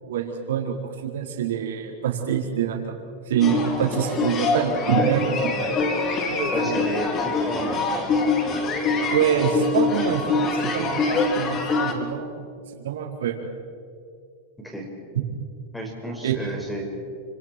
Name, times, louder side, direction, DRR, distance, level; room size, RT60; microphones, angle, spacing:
voice 1, 0.0-3.0 3.3-5.8 6.3-6.9 9.1-12.5 12.7-13.5 16.2-16.3, right 8 dB, 85° right, 0 dB, 4.3 m, -26 dB
sound 1, 3.4-11.9, left 3 dB, 30° left, 3.5 m, -24 dB
voice 2, 6.5-7.8 8.1-8.2 14.6-14.9 15.7-16.8, right 1 dB, 5° left, 0 dB, 5.6 m, -32 dB
30.0 x 27.0 x 4.7 m, 2.3 s
supercardioid pair, 140°, 0 cm